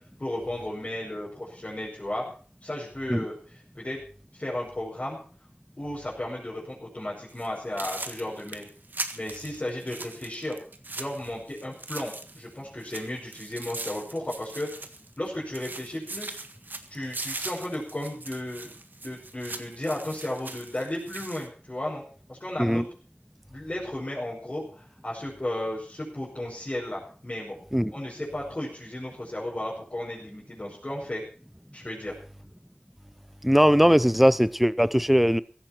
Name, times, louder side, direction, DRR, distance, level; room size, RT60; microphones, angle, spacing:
voice 1, 0.2-2.2 2.6-3.4 3.8-4.0 4.3-5.2 5.8-8.7 9.1-10.6 10.9-14.7 15.2-16.4 16.9-18.7 19.0-22.0 22.3-22.8 23.5-27.6 27.9-31.2 31.7-32.1, left 1 dB, 35° left, -6 dB, 5.4 m, -34 dB
sound 1, 7.3-7.5 7.8-12.5 12.8-15.3 15.5-21.5, right 2 dB, 60° right, 1.7 m, -40 dB
voice 2, 33.4-35.4, equal, 5° right, 17 dB, 0.7 m, -20 dB
16.5 x 14.5 x 4.5 m, 0.42 s
wide cardioid pair, 70°, 4 cm